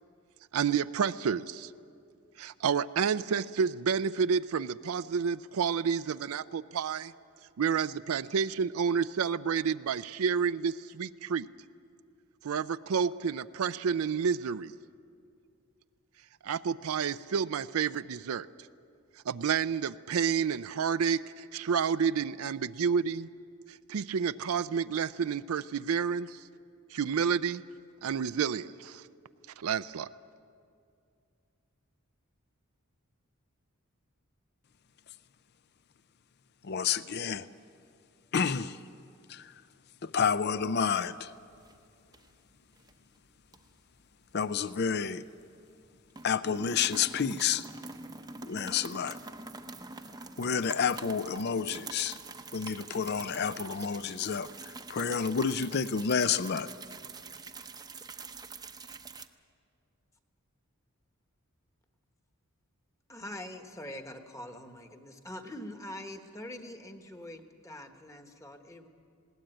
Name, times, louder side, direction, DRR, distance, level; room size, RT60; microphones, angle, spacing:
voice 1, 0.5-1.7 2.4-7.1 7.6-11.5 12.4-14.7 16.4-18.5 19.3-23.3 23.7-26.4 26.9-27.6 28.0-29.0 29.6-30.1, right 6 dB, 80° right, 0.4 m, -30 dB
voice 2, 36.6-37.5 38.3-38.8 39.3-39.5 40.0-41.3 44.3-45.2 46.2-47.7 48.4-49.2 50.4-52.2 52.5-56.7, left 6 dB, 50° left, 0.5 m, -30 dB
sound 1, 40.6-41.2 41.5-41.8 42.1-42.9 43.5-45.4 45.7-45.8 46.1-59.3, right 3 dB, 20° right, 0.7 m, -45 dB
voice 3, 63.1-68.9, left 1 dB, 15° left, 1.2 m, -44 dB
20.0 x 17.5 x 9.0 m
head